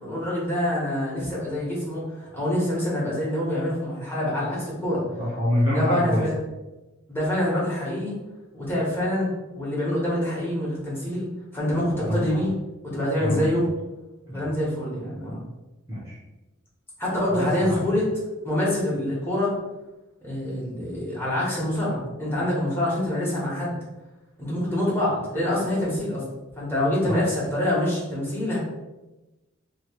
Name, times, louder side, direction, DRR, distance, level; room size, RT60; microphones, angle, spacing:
voice 1, 0.0-5.0 5.7-6.4 7.1-8.1 8.5-9.3 9.5-11.3 11.5-12.5 12.8-13.6 14.3-15.4 17.0-18.1 18.4-19.5 20.2-23.8 24.4-26.2 26.6-28.6, left 1 dB, 10° left, -7 dB, 1.2 m, -26 dB
voice 2, 5.2-6.2 12.0-12.4 13.2-13.6 14.3-14.5 15.9-16.2 17.3-17.9 27.1-27.2, left 1 dB, 15° right, -8 dB, 0.8 m, -26 dB
3.1 x 2.3 x 4.3 m, 1.1 s
head